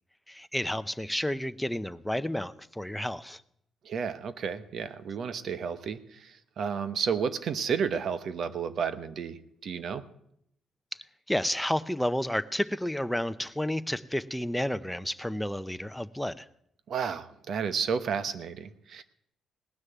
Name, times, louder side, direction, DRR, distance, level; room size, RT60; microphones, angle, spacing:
voice 1, 0.3-3.4 11.3-16.5, left 1 dB, 5° left, 12 dB, 0.7 m, -31 dB
voice 2, 3.8-10.0 16.9-19.0, right 6 dB, 60° right, 12 dB, 1.0 m, -32 dB
18.5 x 6.5 x 9.2 m, 0.72 s
cardioid pair, 90°, 0 cm